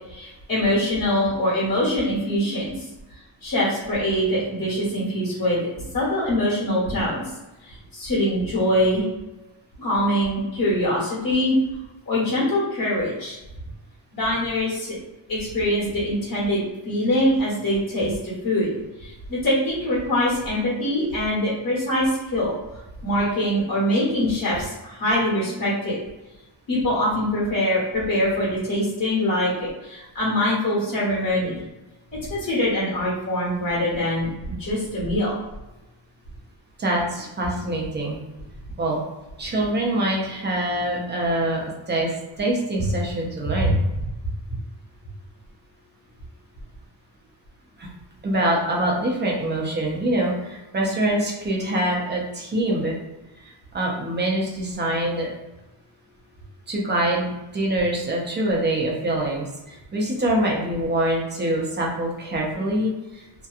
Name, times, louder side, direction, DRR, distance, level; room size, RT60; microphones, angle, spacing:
voice 1, 0.1-2.9 3.4-7.2 7.6-9.1 9.8-11.6 12.1-13.4 14.1-15.0 15.3-22.5 23.0-26.0 26.7-31.5 32.1-34.3 34.6-35.3 43.6-43.8, left 1 dB, 45° left, -7 dB, 1.2 m, -23 dB
voice 2, 36.8-38.2 38.8-39.0 39.4-42.1 42.4-43.8 47.8-47.9 48.2-53.0 53.4-55.3 56.7-63.3, right 1 dB, 25° right, -2 dB, 0.4 m, -24 dB
2.8 x 2.2 x 2.3 m, 1.0 s
wide cardioid pair, 175°, 49 cm